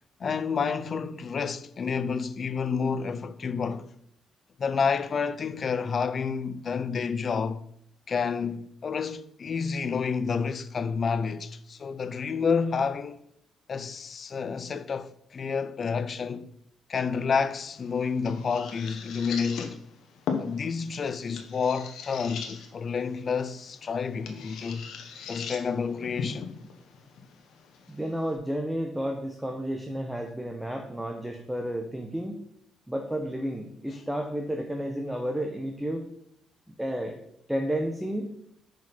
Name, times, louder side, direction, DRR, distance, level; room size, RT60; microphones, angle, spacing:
voice 1, 0.2-3.9 4.6-7.6 8.1-13.2 13.7-16.5 16.9-19.8 20.4-24.9 25.2-26.5, left 5 dB, 45° left, 0.5 m, -29 dB
sound 1, 17.4-28.4, left 6 dB, 75° left, 1.1 m, -40 dB
voice 2, 27.9-32.3 32.9-36.0 36.7-37.2 37.5-38.3, equal, 5° right, 0.9 m, -31 dB
5.8 x 5.1 x 5.7 m
cardioid pair, 90°, 0 cm